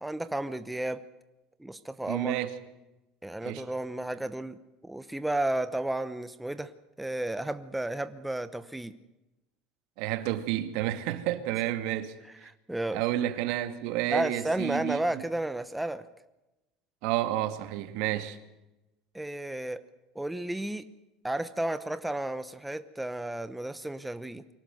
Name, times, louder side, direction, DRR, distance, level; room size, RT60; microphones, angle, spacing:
voice 1, 0.0-1.0 1.6-2.3 3.2-4.6 4.8-6.7 7.0-8.9 12.4-13.0 14.1-16.1 19.1-19.8 20.1-20.9 21.2-24.4, right 1 dB, 5° right, 0.9 m, -32 dB
voice 2, 2.1-2.5 3.4-3.6 10.0-12.1 12.4-12.5 12.9-15.2 17.0-18.4, right 13 dB, 70° right, 2.2 m, -30 dB
24.0 x 18.0 x 7.9 m
supercardioid pair, 130°, 0 cm